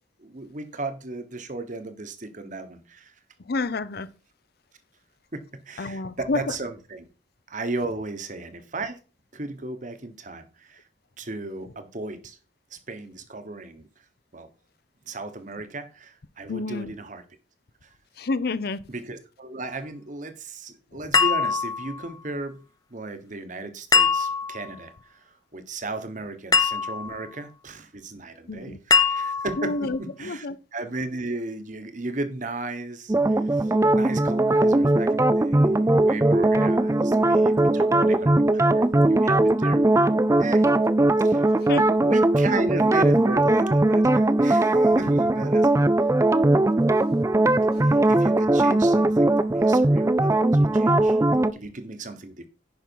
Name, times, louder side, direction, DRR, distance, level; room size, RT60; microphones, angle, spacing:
voice 1, 0.2-3.1 5.3-7.1 7.5-9.0 9.3-10.8 11.2-12.4 12.7-13.9 14.3-14.5 15.0-17.2 17.8-17.9 18.9-22.6 22.9-39.8 40.4-40.7 41.2-41.5 42.0-45.9 47.8-51.2 51.5-52.5, right 2 dB, 45° right, 1.2 m, -35 dB
voice 2, 3.5-4.1 5.8-6.4 16.5-16.9 18.2-18.8 20.9-21.0 28.5-28.8 29.6-30.6 41.7-41.9, left 3 dB, 55° left, 0.6 m, -29 dB
sound 1, 21.1-22.1 23.9-24.7 26.5-27.2 28.9-29.7, left 5 dB, 20° left, 0.7 m, -22 dB
sound 2, 33.1-51.5, right 2 dB, 15° right, 0.4 m, -20 dB
10.5 x 5.4 x 4.6 m
head